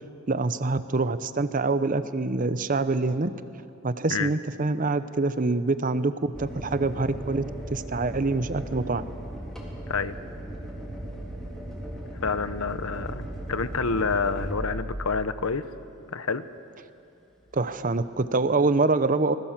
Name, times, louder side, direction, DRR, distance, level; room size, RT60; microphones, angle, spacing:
voice 1, 0.3-3.3 3.8-9.0 17.5-19.4, right 3 dB, 35° right, 12 dB, 0.7 m, -25 dB
sound 1, 6.3-15.5 17.5-17.9, right 1 dB, 5° left, 3.5 m, -37 dB
voice 2, 12.2-15.6 16.1-16.4, left 4 dB, 75° left, 13 dB, 0.9 m, -28 dB
25.5 x 20.5 x 7.4 m, 2.6 s
head